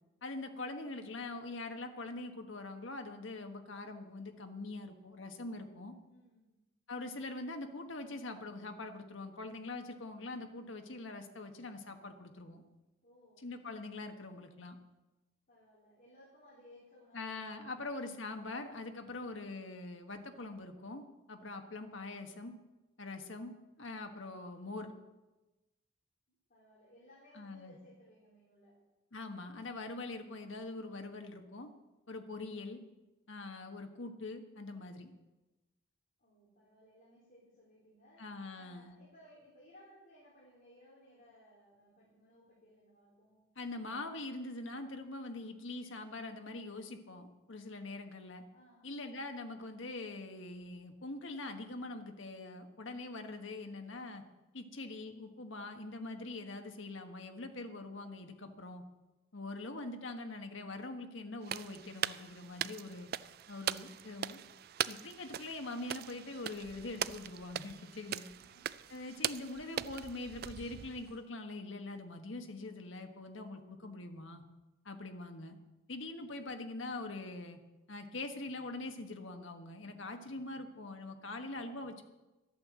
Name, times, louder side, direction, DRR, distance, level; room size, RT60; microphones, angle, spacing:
voice 1, 0.2-5.9 6.9-12.6 13.4-14.8 17.1-21.0 21.3-22.5 23.0-24.9 27.3-27.8 29.1-31.7 32.1-32.8 33.3-35.1 38.2-38.9 43.6-48.4 48.8-54.2 54.5-58.8 59.3-63.1 63.5-64.4 64.9-68.3 68.9-74.4 74.8-75.6 75.9-77.6 77.9-82.0, left 2 dB, 65° left, 6 dB, 1.3 m, -43 dB
voice 2, 6.1-6.6 13.0-13.5 15.5-17.8 26.5-28.8 36.2-38.3 38.5-43.4 48.5-48.9 68.4-68.6, left 1 dB, 40° left, -7 dB, 3.5 m, -61 dB
sound 1, 61.4-71.2, right 10 dB, 45° right, 0.3 m, -41 dB
12.0 x 8.7 x 7.6 m, 1.1 s
head